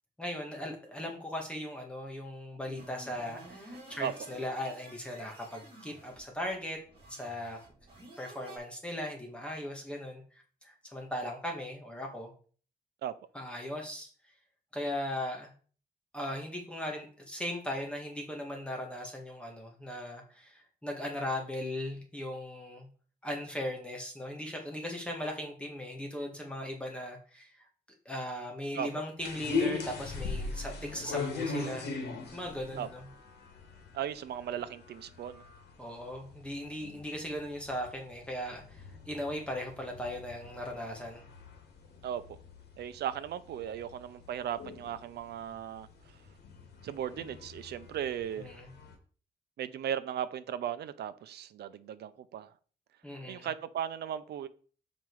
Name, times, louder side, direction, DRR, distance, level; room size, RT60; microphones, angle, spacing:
voice 1, 0.2-6.8 7.1-7.6 8.2-10.2 10.6-12.3 13.3-14.1 14.7-15.5 16.1-22.9 23.2-27.5 28.1-31.9 32.3-33.1 35.8-41.3 48.4-48.7 53.0-53.5, left 1 dB, 5° left, 1.8 m, -38 dB
sound 1, 2.7-8.6, right 1 dB, 35° right, 4.4 m, -51 dB
sound 2, 29.2-48.9, left 4 dB, 80° left, 2.0 m, -41 dB
voice 2, 33.9-35.4 42.0-42.4 42.8-45.9 46.8-48.5 49.6-52.5 53.2-54.5, right 10 dB, 80° right, 0.7 m, -37 dB
7.4 x 5.2 x 4.7 m
wide cardioid pair, 150°, 17 cm